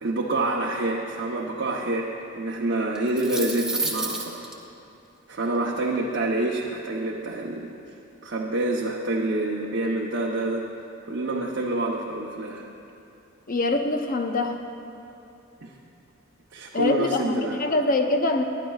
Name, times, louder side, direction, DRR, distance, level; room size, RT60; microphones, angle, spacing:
voice 1, 0.0-4.5 5.3-7.6 8.2-10.6 11.0-12.7 15.6-15.7 16.5-17.6, right 2 dB, 60° right, -3 dB, 0.9 m, -27 dB
sound 1, 2.9-4.5, right 2 dB, 5° right, 0.9 m, -29 dB
voice 2, 13.5-14.6 16.7-18.4, left 2 dB, 45° left, 5 dB, 0.8 m, -24 dB
20.5 x 11.5 x 2.4 m, 2.7 s
head